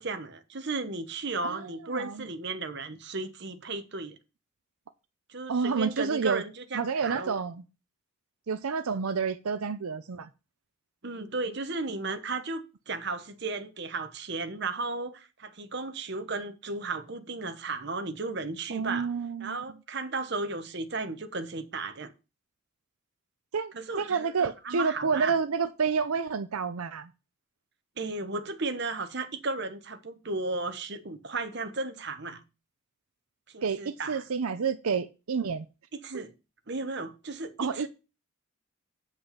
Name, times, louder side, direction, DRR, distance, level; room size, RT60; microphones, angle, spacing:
voice 1, 0.0-4.2 5.3-7.4 11.0-19.1 19.4-22.1 23.7-25.4 28.0-32.4 33.5-34.2 36.0-36.3 36.7-37.9, right 3 dB, 50° right, 1.1 m, -35 dB
voice 2, 1.4-2.3 5.5-6.4 6.7-7.6 8.5-10.3 18.7-19.6 23.5-27.1 33.6-35.7 36.1-36.2 37.6-37.9, right 5 dB, 90° right, 0.6 m, -29 dB
8.5 x 5.5 x 5.8 m
head